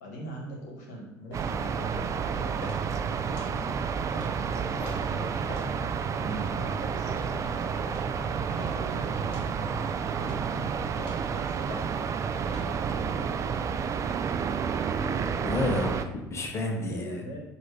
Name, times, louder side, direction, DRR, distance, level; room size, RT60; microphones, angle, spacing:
voice 1, 0.0-4.1 4.4-5.5 6.3-7.8 8.7-10.8 11.2-12.0 12.5-14.2 16.8-17.4, equal, 90° left, -1 dB, 1.0 m, -44 dB
sound 1, 1.3-1.5 2.0-2.2 2.6-2.8 3.3-3.5 4.1-4.3 4.8-5.0 5.5-5.7 6.2-6.4 7.1-7.3 7.9-8.1 8.6-8.8 9.3-9.5 10.2-10.4 11.0-11.3 11.7-11.9 12.4-12.7, left 2 dB, 65° left, 1.1 m, -43 dB
sound 2, 1.3-16.0, right 6 dB, 35° right, 0.3 m, -30 dB
voice 2, 15.4-17.2, left 2 dB, 30° left, 1 dB, 0.9 m, -30 dB
6.1 x 2.7 x 3.1 m, 0.90 s
hypercardioid pair, 75°, 9 cm